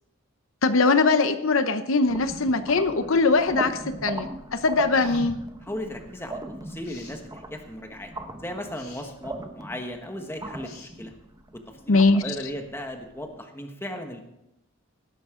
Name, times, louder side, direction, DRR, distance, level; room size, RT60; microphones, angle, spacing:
voice 1, 0.6-5.4 11.9-12.3, left 3 dB, 70° left, 10 dB, 0.8 m, -21 dB
sound 1, 2.1-13.2, right 2 dB, 15° right, 0.8 m, -38 dB
sound 2, 4.9-5.3 6.8-7.2 8.7-9.1 10.6-10.9, left 4 dB, 45° left, 2.9 m, -48 dB
voice 2, 5.6-8.1 8.4-11.1 11.5-14.2, left 1 dB, 10° left, 4 dB, 1.3 m, -36 dB
17.0 x 11.5 x 3.8 m, 0.87 s
head